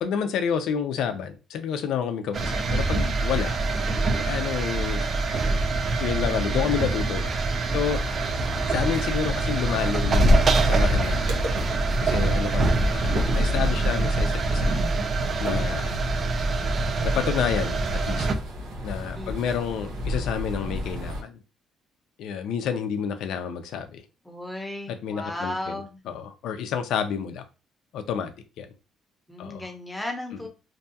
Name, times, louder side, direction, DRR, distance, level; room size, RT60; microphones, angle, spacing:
voice 1, 0.0-3.6 4.1-5.1 6.0-7.3 7.7-8.0 8.7-11.4 12.0-14.8 15.4-16.0 17.0-18.3 18.8-21.4 22.2-24.0 24.9-27.4 27.9-28.7 29.4-29.7, left 7 dB, 80° left, 0.4 m, -29 dB
sound 1, 2.3-18.3, right 3 dB, 40° right, 0.4 m, -25 dB
sound 2, 7.8-21.2, left 1 dB, 90° right, 0.7 m, -29 dB
voice 2, 19.2-19.5 24.2-26.0 29.3-30.5, left 1 dB, 5° left, 0.7 m, -35 dB
2.6 x 2.3 x 2.7 m
cardioid pair, 120°, 0 cm